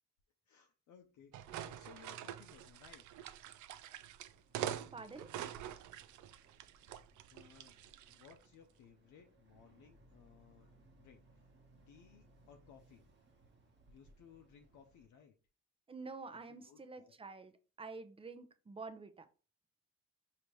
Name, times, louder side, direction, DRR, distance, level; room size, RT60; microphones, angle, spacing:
voice 1, 0.5-3.0 7.3-7.8 8.1-10.7 11.0-11.5 11.9-13.0 13.9-15.3 16.3-17.2, left 7 dB, 75° left, 0.7 m, -61 dB
sound 1, 1.3-8.4, right 11 dB, 75° right, 0.4 m, -45 dB
Boat Water vehicle, 4.3-15.1, right 2 dB, 35° right, 1.2 m, -67 dB
voice 2, 4.9-5.3 15.9-17.5 17.8-19.3, right 3 dB, 20° right, 0.6 m, -48 dB
5.0 x 2.9 x 3.1 m
cardioid pair, 90°, 30 cm